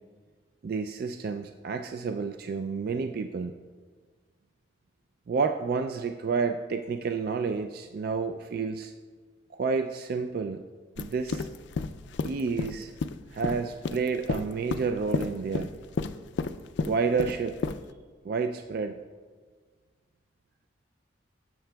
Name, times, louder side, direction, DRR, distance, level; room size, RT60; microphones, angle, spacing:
voice 1, 0.6-3.5 5.3-8.9 9.5-10.6 11.0-11.5 12.2-12.9 13.3-15.7 16.9-17.6 18.2-19.0, right 5 dB, 50° right, 6 dB, 0.3 m, -30 dB
sound 1, 11.0-17.8, left 4 dB, 65° left, 0.3 m, -32 dB
16.0 x 7.6 x 2.3 m, 1.5 s
head